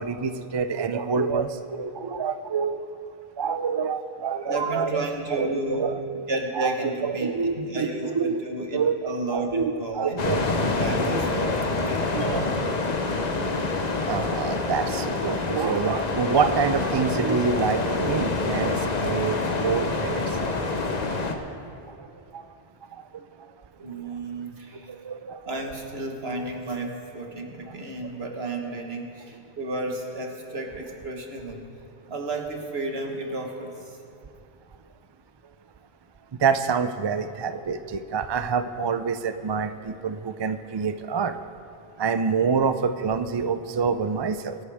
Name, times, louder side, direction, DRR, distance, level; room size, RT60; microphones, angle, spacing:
voice 1, 0.0-2.8 3.4-5.1 5.4-6.0 6.5-8.4 8.7-10.4 10.8-11.4 12.1-12.5 14.1-20.5 20.9-21.0 22.0-22.1 22.3-22.4 22.9-23.0 23.9-24.0 24.9-25.4 36.4-41.3 42.0-44.6, right 5 dB, 40° right, 10 dB, 0.4 m, -27 dB
voice 2, 4.5-6.0 6.3-10.2 10.6-12.1 23.2-23.3 23.8-24.9 25.4-31.6 32.1-34.0, right 2 dB, 75° right, 2 dB, 1.8 m, -32 dB
sound 1, 10.2-21.4, left 3 dB, 45° left, 1.0 m, -26 dB
24.0 x 11.5 x 3.5 m, 2.6 s
omnidirectional pair, 1.1 m